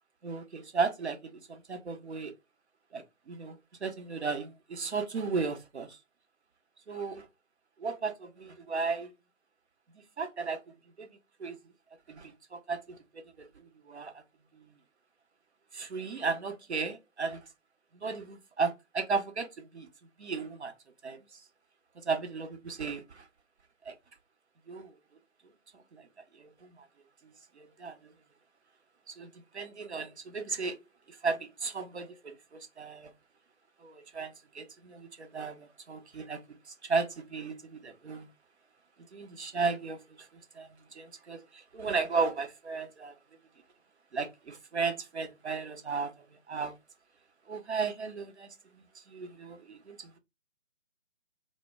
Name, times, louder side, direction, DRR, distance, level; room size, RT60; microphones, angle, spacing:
voice 1, 0.2-2.3 2.9-6.0 6.9-7.3 7.8-9.1 10.2-10.6 11.0-11.1 11.4-11.6 12.1-13.0 13.4-14.2 14.6-14.7 15.7-17.5 17.9-19.9 20.2-20.7 21.0-21.4 22.0-23.3 23.8-23.9 24.7-25.0 25.7-26.1 26.3-26.9 27.6-28.0 29.1-30.8 31.1-33.1 33.8-36.4 36.7-38.3 39.1-40.3 40.5-43.1 44.1-46.7 47.5-48.5 49.1-50.2, right 4 dB, 60° right, 0.6 m, -35 dB
2.1 x 2.0 x 3.3 m
figure-of-eight pair, 150°, 39 cm